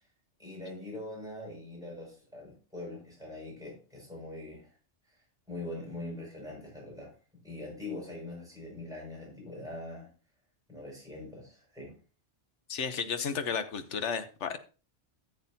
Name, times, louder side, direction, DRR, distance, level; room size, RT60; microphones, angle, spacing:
voice 1, 0.4-4.7 5.1-5.2 5.5-7.1 7.4-10.1 10.7-11.9, left 2 dB, 5° right, -2 dB, 6.0 m, -42 dB
voice 2, 12.7-14.6, left 6 dB, 80° left, 10 dB, 1.3 m, -33 dB
14.5 x 8.0 x 2.8 m, 0.34 s
omnidirectional pair, 1.2 m